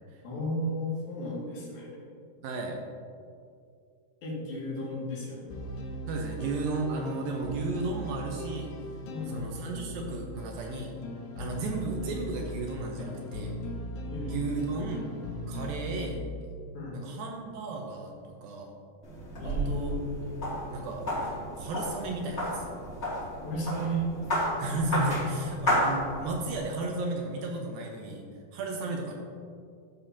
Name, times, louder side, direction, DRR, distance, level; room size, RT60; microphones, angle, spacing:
voice 1, 0.2-2.0 4.2-5.7 9.1-9.5 14.1-14.4 16.7-17.1 19.4-20.0 23.4-24.1, equal, 60° left, -7 dB, 3.8 m, -34 dB
voice 2, 2.4-2.8 6.1-8.7 9.3-10.9 11.4-13.5 14.2-15.0 15.5-16.2 16.9-18.1 18.4-18.7 19.4-19.9 20.7-21.1 21.6-22.7 24.6-28.2 28.5-29.1, right 2 dB, 75° right, 1 dB, 2.2 m, -34 dB
sound 1, 5.5-16.2, left 1 dB, 85° left, 3.3 m, -39 dB
sound 2, 19.0-26.6, equal, 30° left, 1.8 m, -32 dB
15.0 x 7.0 x 2.8 m, 2.3 s
omnidirectional pair, 5.1 m